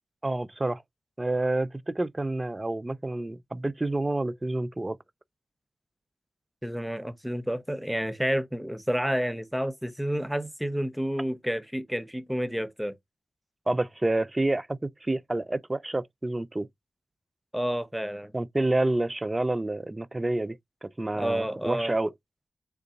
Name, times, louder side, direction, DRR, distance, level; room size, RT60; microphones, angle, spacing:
voice 1, 0.2-0.8 1.2-5.0 13.7-16.7 18.3-22.1, right 2 dB, 25° right, 0.4 m, -28 dB
voice 2, 6.6-12.9 17.5-18.3 21.1-21.9, equal, 5° right, 0.8 m, -30 dB
3.8 x 2.3 x 3.8 m
cardioid pair, 40°, 0 cm